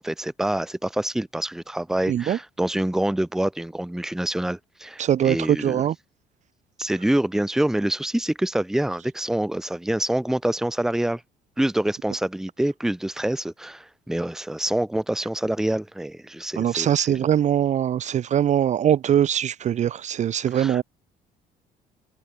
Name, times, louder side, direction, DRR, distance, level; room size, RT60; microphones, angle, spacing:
voice 1, 0.0-5.8 6.8-11.2 11.6-17.2 20.5-20.8, right 1 dB, 5° right, 0.7 m, -26 dB
voice 2, 2.1-2.4 5.0-6.0 16.6-20.8, right 10 dB, 45° right, 0.6 m, -22 dB
cardioid pair, 110°, 17 cm